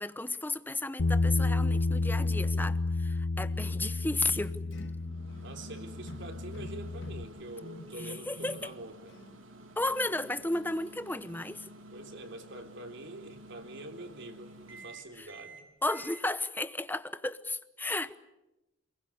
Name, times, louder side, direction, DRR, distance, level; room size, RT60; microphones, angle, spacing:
voice 1, 0.0-4.6 8.0-8.7 9.8-11.7 15.2-15.3 15.8-18.2, left 2 dB, 10° left, 0.9 m, -33 dB
Bass guitar, 1.0-7.2, left 3 dB, 85° left, 0.8 m, -31 dB
sound 1, 4.3-8.8 9.1-9.4, left 1 dB, 60° left, 1.6 m, -49 dB
Microwave oven, 4.7-16.2, right 2 dB, 85° right, 3.6 m, -50 dB
voice 2, 5.2-9.0 11.9-15.6, right 1 dB, 65° right, 3.6 m, -45 dB
27.5 x 21.5 x 8.5 m
head